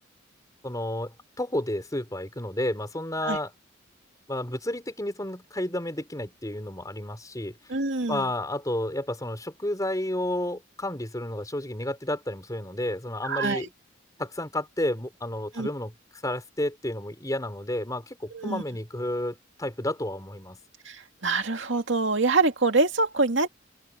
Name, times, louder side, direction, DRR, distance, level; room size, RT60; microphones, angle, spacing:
voice 1, 0.6-3.5 4.3-7.6 8.1-13.7 14.2-15.9 16.2-20.6, left 1 dB, 15° left, 4.4 m, -31 dB
voice 2, 7.7-8.2 13.2-13.7 15.5-15.7 18.3-18.6 20.8-23.5, right 3 dB, 65° right, 2.3 m, -25 dB
open air
head